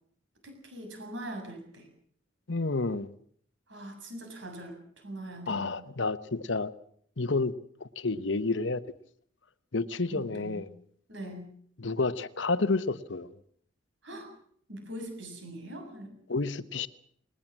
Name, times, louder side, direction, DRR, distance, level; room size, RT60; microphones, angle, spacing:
voice 1, 0.4-1.9 3.7-5.8 10.1-10.6 11.1-11.5 14.0-14.3 14.7-16.1, right 1 dB, 70° right, 5 dB, 7.3 m, -42 dB
voice 2, 2.5-3.1 5.5-6.7 7.2-7.5 7.8-8.8 9.7-10.7 11.8-13.3 16.3-16.9, left 3 dB, 70° left, 14 dB, 1.0 m, -30 dB
20.0 x 20.0 x 7.4 m, 0.62 s
head